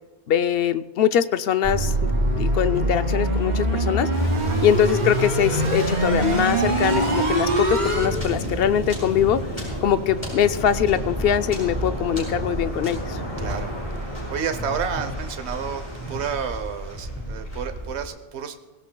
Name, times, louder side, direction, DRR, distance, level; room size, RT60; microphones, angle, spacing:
voice 1, 0.3-1.9 2.4-4.1 4.6-9.5 9.8-13.2, left 9 dB, 65° left, 12 dB, 0.7 m, -22 dB
sound 1, 1.6-8.1, right 1 dB, 50° right, 2.4 m, -23 dB
Waves surf, 4.1-18.1, equal, 25° left, 5.8 m, -31 dB
voice 2, 13.4-13.7 14.0-15.8 16.1-18.6, right 7 dB, 75° right, 8 dB, 1.1 m, -30 dB
23.0 x 17.0 x 2.2 m, 1.2 s
omnidirectional pair, 1.1 m